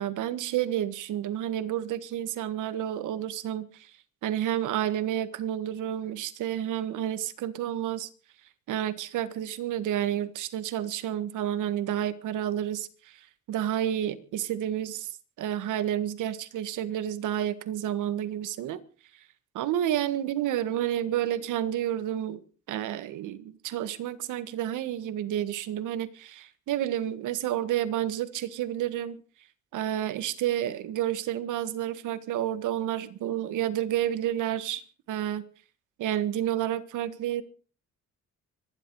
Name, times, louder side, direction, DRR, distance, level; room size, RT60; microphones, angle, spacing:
voice 1, 0.0-3.9 4.2-8.1 8.7-13.1 13.5-15.1 15.4-18.8 19.5-22.4 22.7-29.2 29.7-34.8 35.1-35.4 36.0-37.4, right 11 dB, 85° right, 1.7 m, -30 dB
24.5 x 11.0 x 4.8 m
cardioid pair, 90°, 30 cm